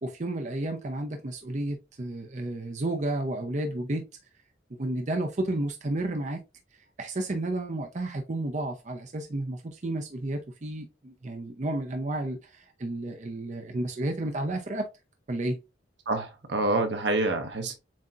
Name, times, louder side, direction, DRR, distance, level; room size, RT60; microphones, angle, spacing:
voice 1, 0.0-4.1 4.8-6.4 7.0-14.9 15.3-15.6, right 1 dB, 40° right, 0.6 m, -32 dB
voice 2, 16.1-17.7, right 2 dB, 75° right, 1.0 m, -27 dB
7.4 x 2.8 x 2.4 m
head